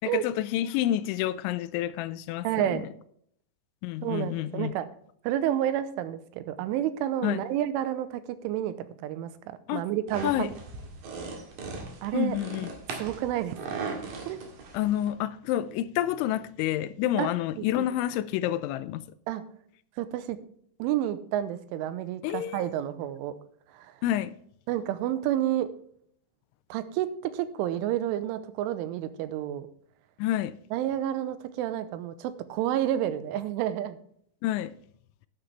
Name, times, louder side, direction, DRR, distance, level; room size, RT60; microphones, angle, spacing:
voice 1, 0.0-2.8 3.8-4.7 7.2-7.4 9.7-9.8 10.2-10.5 12.1-12.7 14.7-19.0 22.2-22.7 24.0-24.3 30.2-30.5 34.4-34.7, left 13 dB, 85° left, 2.8 m, -29 dB
voice 2, 2.4-2.9 4.0-4.9 5.2-10.5 12.0-12.4 13.0-13.6 14.3-14.4 17.2-17.3 17.6-17.9 19.3-19.4 20.0-20.4 20.8-23.3 23.7-23.9 24.7-25.7 26.7-29.7 30.7-34.0, right 12 dB, 85° right, 3.2 m, -30 dB
sound 1, 10.1-15.1, right 4 dB, 55° right, 3.0 m, -39 dB
11.5 x 10.0 x 3.3 m
omnidirectional pair, 5.6 m